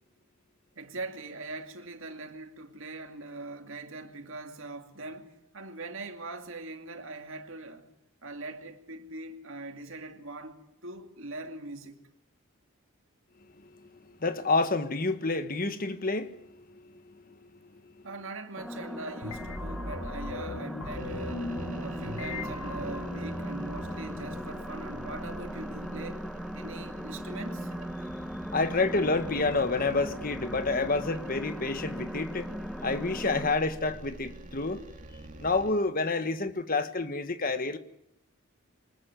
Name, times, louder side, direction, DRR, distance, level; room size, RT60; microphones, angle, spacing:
voice 1, 0.8-7.9 8.2-12.0 18.0-26.3 26.5-27.7, right 2 dB, 60° right, 2.5 m, -42 dB
voice 2, 13.6-18.0 21.5-21.9 28.5-32.5 32.8-34.8 35.4-37.8, left 3 dB, 40° left, 1.5 m, -29 dB
sound 1, 18.6-33.5, equal, ahead, 1.0 m, -39 dB
sound 2, 19.2-26.1, left 2 dB, 90° left, 3.0 m, -40 dB
sound 3, 20.9-35.7, right 1 dB, 35° right, 2.6 m, -45 dB
24.5 x 20.0 x 9.2 m
head